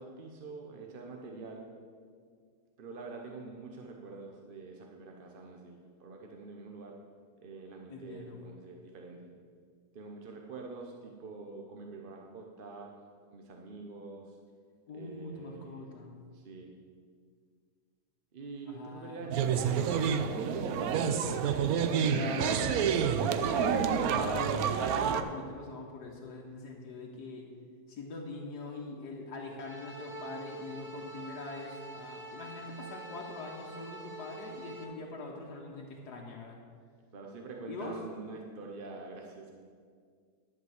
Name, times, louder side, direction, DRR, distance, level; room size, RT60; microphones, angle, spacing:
voice 1, 0.0-1.7 2.8-7.0 7.4-9.3 9.9-12.9 13.3-14.4 14.9-15.9 16.3-16.7 18.3-21.0 21.3-22.7 37.1-39.5, right 3 dB, 45° right, 1 dB, 0.8 m, -45 dB
voice 2, 7.9-8.4 14.9-16.2 18.7-19.3 21.9-27.5 27.9-36.6 37.7-38.0, left 3 dB, 80° left, -2 dB, 1.6 m, -42 dB
sound 1, 19.3-25.2, right 7 dB, 75° right, 1.0 m, -28 dB
sound 2, 29.6-34.8, right 2 dB, 25° right, 1.2 m, -46 dB
11.0 x 5.1 x 7.8 m, 2.1 s
omnidirectional pair, 1.7 m